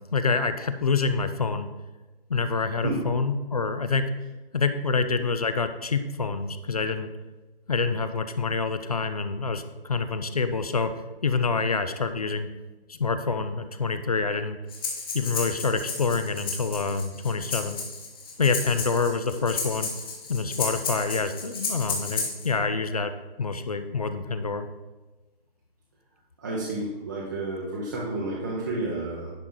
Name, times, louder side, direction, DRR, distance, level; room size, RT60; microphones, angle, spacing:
voice 1, 0.1-1.7 2.3-4.1 4.5-7.1 7.7-10.9 11.2-12.5 12.9-14.6 15.1-17.8 18.4-19.9 20.3-23.1 23.4-24.7, left 4 dB, 40° left, 10 dB, 0.4 m, -26 dB
Breathing, 14.7-22.5, left 4 dB, 25° left, 1.0 m, -33 dB
voice 2, 26.4-29.3, right 2 dB, 20° right, -5 dB, 0.7 m, -30 dB
10.5 x 4.5 x 3.8 m, 1.2 s
hypercardioid pair, 165°, 30 cm